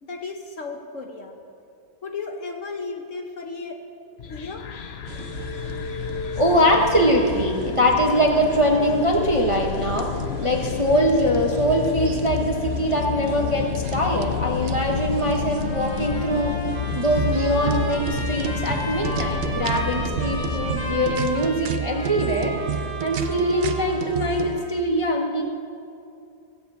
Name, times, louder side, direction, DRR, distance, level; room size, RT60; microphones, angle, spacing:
voice 1, 0.0-1.4 2.0-3.8 4.3-4.7, left 4 dB, 55° left, 3 dB, 1.1 m, -34 dB
sound 1, 4.2-21.6, left 7 dB, 85° left, 0.5 m, -30 dB
sound 2, 5.1-24.6, right 7 dB, 65° right, 0.6 m, -33 dB
voice 2, 6.4-10.1 10.4-16.6 16.9-25.4, equal, 25° right, 0 dB, 0.8 m, -22 dB
Trumpet, 15.6-24.8, equal, 70° left, 3.2 m, -35 dB
14.5 x 7.4 x 8.1 m, 2.6 s
omnidirectional pair, 1.9 m